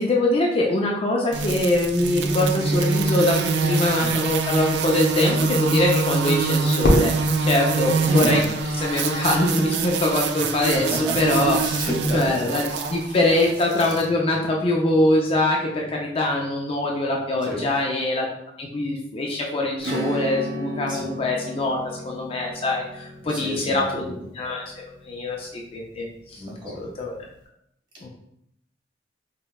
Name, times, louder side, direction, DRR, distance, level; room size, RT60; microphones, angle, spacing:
voice 1, 0.0-8.4 8.8-11.6 12.1-18.3 18.6-21.8 22.1-24.6 25.1-26.4 26.7-27.1 28.0-28.1, left 1 dB, 30° left, -1 dB, 0.4 m, -23 dB
sound 1, 1.3-14.0, right 4 dB, 65° right, 0.3 m, -24 dB
Fireworks, 6.8-9.0, left 1 dB, 70° left, 0.9 m, -25 dB
voice 2, 8.0-8.4 11.0-11.3 11.6-12.3 17.4-17.7 20.9-21.1 23.3-24.2 26.4-26.9, equal, 25° right, -4 dB, 1.4 m, -30 dB
Acoustic guitar / Strum, 19.8-26.0, equal, 90° right, 0.9 m, -34 dB
5.1 x 2.2 x 2.2 m, 0.75 s
head